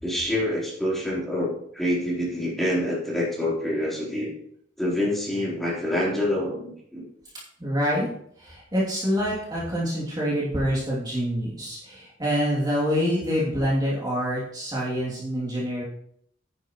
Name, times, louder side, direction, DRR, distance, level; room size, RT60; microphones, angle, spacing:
voice 1, 0.0-4.3 4.8-7.1, left 1 dB, ahead, -6 dB, 3.6 m, -26 dB
voice 2, 7.6-8.1 8.4-15.8, equal, 20° right, -6 dB, 2.8 m, -26 dB
10.5 x 9.8 x 3.1 m, 0.67 s
head